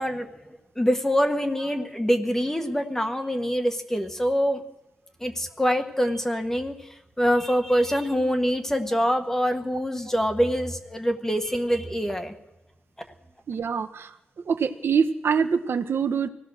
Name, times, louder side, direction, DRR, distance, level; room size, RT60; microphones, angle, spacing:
voice 1, 0.0-4.6 5.2-12.3, equal, 10° left, 5 dB, 1.6 m, -25 dB
voice 2, 13.5-14.2 14.5-16.3, right 6 dB, 70° right, 8 dB, 1.2 m, -24 dB
25.0 x 17.0 x 6.5 m, 0.92 s
wide cardioid pair, 165°, 4 cm